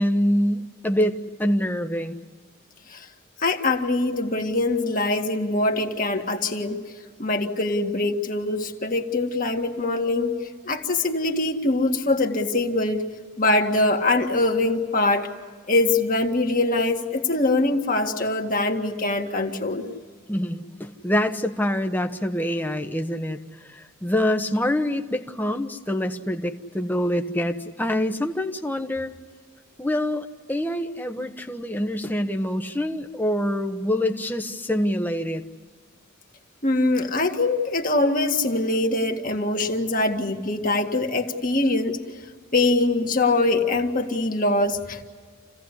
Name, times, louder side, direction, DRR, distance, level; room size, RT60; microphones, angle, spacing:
voice 1, 0.0-2.2 20.3-29.1 29.8-35.4, left 1 dB, 10° left, 5 dB, 1.1 m, -25 dB
voice 2, 3.4-6.8 7.2-10.3 10.7-13.1 13.4-15.3 15.7-19.9 36.6-42.3 42.5-45.0, left 2 dB, 40° left, 3 dB, 2.0 m, -23 dB
28.5 x 17.0 x 9.9 m, 1.5 s
head